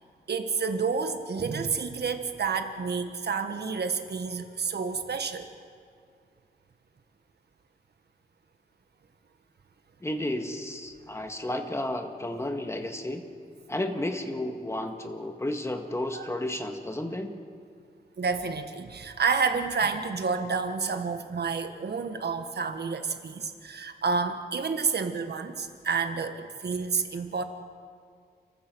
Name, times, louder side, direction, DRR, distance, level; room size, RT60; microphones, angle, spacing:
voice 1, 0.3-5.5 16.1-16.3 18.2-27.4, right 5 dB, 75° right, 7 dB, 1.5 m, -29 dB
voice 2, 10.0-13.2 13.7-17.3, left 1 dB, 15° left, 5 dB, 1.8 m, -32 dB
29.5 x 14.5 x 6.2 m, 2.2 s
wide cardioid pair, 105°, 17 cm